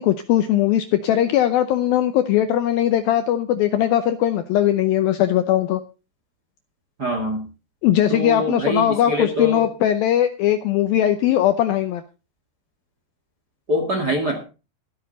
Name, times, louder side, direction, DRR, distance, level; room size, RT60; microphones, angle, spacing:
voice 1, 0.0-5.8 7.8-12.0, left 11 dB, 80° left, 9 dB, 2.2 m, -19 dB
voice 2, 7.0-7.4 8.1-9.6 13.7-14.4, left 1 dB, 35° right, 3 dB, 1.7 m, -24 dB
14.0 x 12.5 x 4.0 m, 0.32 s
omnidirectional pair, 5.0 m